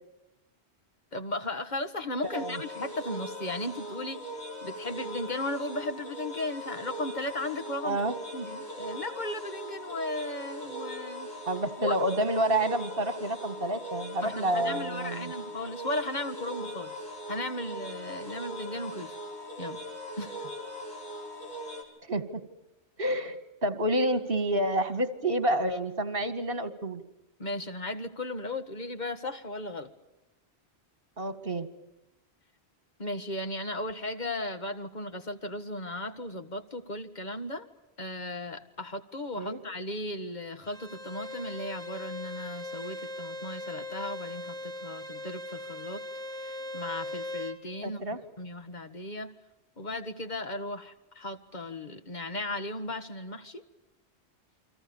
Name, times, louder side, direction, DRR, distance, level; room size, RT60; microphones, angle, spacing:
voice 1, 1.1-4.2 4.6-8.0 8.3-11.3 11.8-11.9 14.2-17.0 17.3-19.2 19.6-19.8 20.2-20.5 27.4-29.9 33.0-37.7 38.0-46.0 46.4-48.0 48.4-49.3 49.8-53.6, left 1 dB, 40° left, 8 dB, 1.8 m, -36 dB
sound 1, 2.2-21.8, equal, 85° left, 5.6 m, -40 dB
voice 2, 11.5-15.3 22.1-22.4 23.0-27.0 31.2-31.7 39.4-39.6 47.8-48.2, right 1 dB, 55° right, 11 dB, 2.3 m, -29 dB
Bowed string instrument, 40.6-47.6, left 1 dB, 5° left, 1.9 m, -39 dB
30.0 x 24.0 x 7.2 m, 0.94 s
omnidirectional pair, 1.1 m